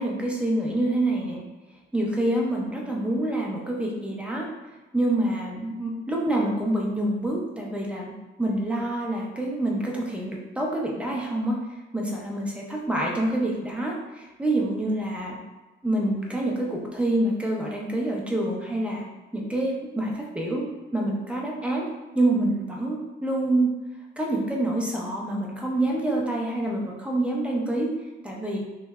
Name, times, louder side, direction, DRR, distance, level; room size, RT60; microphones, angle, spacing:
voice 1, 0.0-1.4 1.9-4.5 4.9-8.1 8.4-11.6 11.9-15.3 15.8-19.0 19.3-20.6 20.9-21.8 22.1-23.7 24.2-27.9 28.2-28.6, right 1 dB, 5° right, -2 dB, 0.6 m, -26 dB
3.1 x 2.2 x 2.2 m, 1.2 s
cardioid pair, 90°, 20 cm